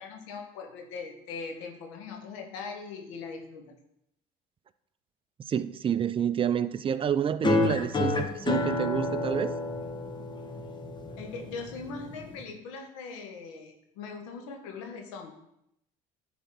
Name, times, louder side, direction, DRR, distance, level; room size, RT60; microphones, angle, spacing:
voice 1, 0.0-3.8 11.2-15.3, left 4 dB, 90° left, 4 dB, 1.5 m, -40 dB
voice 2, 5.4-9.5, right 8 dB, 35° right, 14 dB, 0.5 m, -28 dB
sound 1, 7.4-12.4, left 2 dB, 30° left, 1.3 m, -30 dB
10.0 x 4.3 x 5.8 m, 0.80 s
supercardioid pair, 90°, 16 cm